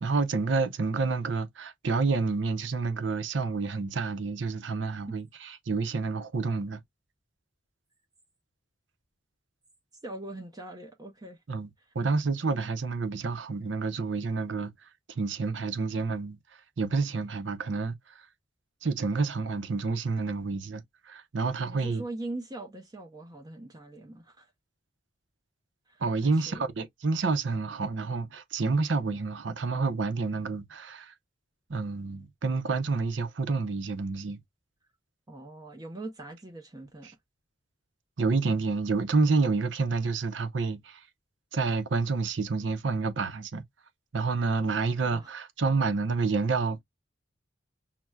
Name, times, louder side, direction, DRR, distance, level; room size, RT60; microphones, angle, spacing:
voice 1, 0.0-6.8 11.5-11.7 11.9-14.7 15.1-16.4 16.8-18.2 18.8-22.0 26.0-31.1 31.7-34.4 38.2-41.0 41.5-43.6 44.1-46.8, right 4 dB, 75° right, 0.6 m, -29 dB
voice 2, 10.0-11.4 21.6-24.5 25.9-26.7 35.3-37.1 45.1-45.3, right 2 dB, 20° right, 0.6 m, -41 dB
5.8 x 2.1 x 2.2 m
head